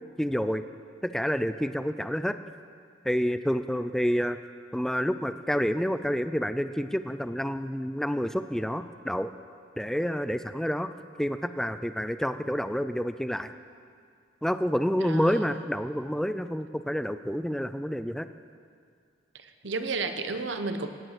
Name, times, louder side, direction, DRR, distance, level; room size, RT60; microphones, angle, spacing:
voice 1, 0.2-0.6 1.0-2.4 3.0-4.4 4.7-9.3 9.8-10.9 11.2-13.5 14.4-18.3, equal, ahead, 11 dB, 0.4 m, -28 dB
voice 2, 15.0-15.4 19.4-20.9, right 3 dB, 70° right, 8 dB, 1.1 m, -32 dB
17.0 x 9.1 x 7.8 m, 2.1 s
head